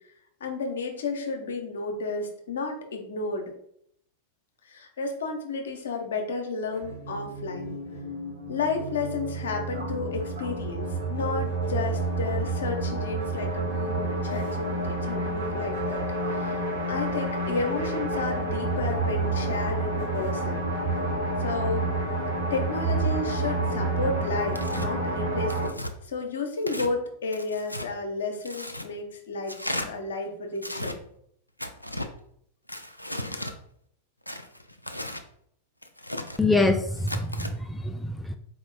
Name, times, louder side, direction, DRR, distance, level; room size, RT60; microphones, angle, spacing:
voice 1, 0.4-3.5 4.6-7.7 8.5-16.0 16.3-20.6 21.4-21.9 22.5-25.7 26.0-29.6 29.8-31.0, left 4 dB, 65° left, 4 dB, 0.9 m, -32 dB
sound 1, 6.7-25.7, right 2 dB, 70° right, 1.4 m, -29 dB
Tearing, 24.5-24.9 25.5-25.9 26.6-26.9 27.3-27.9 28.4-28.9 29.5-29.9 30.6-31.0 31.6-32.1 32.7-33.5 34.3-35.2 35.8-36.4 37.0-37.5, left 1 dB, 90° left, 0.4 m, -35 dB
voice 2, 36.4-38.4, left 2 dB, 5° left, 6 dB, 0.3 m, -25 dB
4.4 x 2.9 x 3.8 m, 0.68 s
figure-of-eight pair, 90°, 0 cm